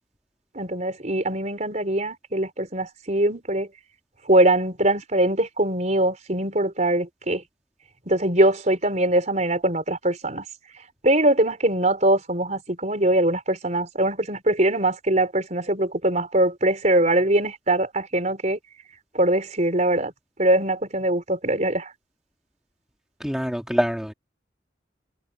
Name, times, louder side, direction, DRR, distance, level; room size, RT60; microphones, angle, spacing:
voice 1, 0.5-3.7 4.2-7.4 8.1-10.4 11.0-18.6 19.1-20.1 20.4-21.9, right 1 dB, 40° right, 4.8 m, -22 dB
voice 2, 23.2-24.1, equal, 5° right, 2.7 m, -25 dB
head